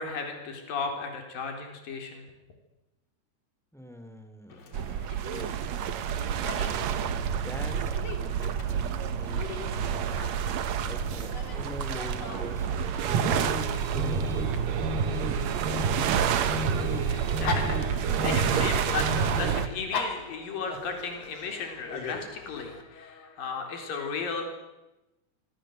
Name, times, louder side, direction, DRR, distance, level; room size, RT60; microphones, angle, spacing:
voice 1, 0.0-2.3 16.8-24.5, left 4 dB, 60° left, 4 dB, 5.5 m, -35 dB
voice 2, 3.7-4.8 7.3-10.4 10.8-13.6 13.9-14.8, equal, ahead, 7 dB, 2.6 m, -44 dB
Dog, 4.5-22.8, left 4 dB, 40° left, 3.7 m, -42 dB
sound 1, 4.7-19.7, right 8 dB, 60° right, 1.9 m, -29 dB
sound 2, 13.0-19.7, right 3 dB, 80° right, 4.3 m, -30 dB
26.0 x 25.0 x 8.0 m, 1.0 s
omnidirectional pair, 4.6 m